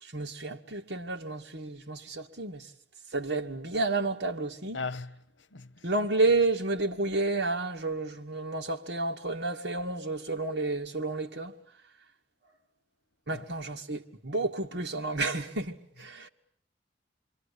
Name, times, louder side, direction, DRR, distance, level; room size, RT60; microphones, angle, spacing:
voice 1, 0.0-2.7 3.1-4.8 5.8-11.5 13.3-16.3, right 3 dB, 65° right, 2.1 m, -31 dB
voice 2, 4.7-5.1 5.5-5.8 13.3-13.5 16.2-16.3, left 4 dB, 80° left, 1.1 m, -37 dB
28.0 x 24.5 x 8.5 m
head